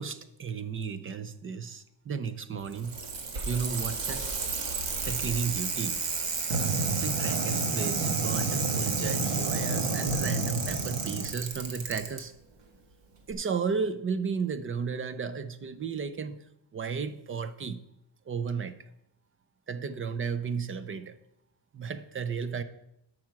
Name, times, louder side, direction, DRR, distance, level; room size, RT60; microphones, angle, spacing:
voice 1, 0.0-3.0 3.5-4.3 5.0-6.0 7.0-12.3 13.3-16.4 16.7-17.8 18.3-18.8 19.7-21.2 21.7-22.6, right 6 dB, 30° right, 13 dB, 0.4 m, -33 dB
Bicycle, 2.6-12.2 13.3-13.4, right 5 dB, 60° right, 1.7 m, -32 dB
sound 1, 6.5-11.3, right 2 dB, 80° right, 1.8 m, -31 dB
12.0 x 6.1 x 5.8 m, 0.80 s
cardioid pair, 180°, 47 cm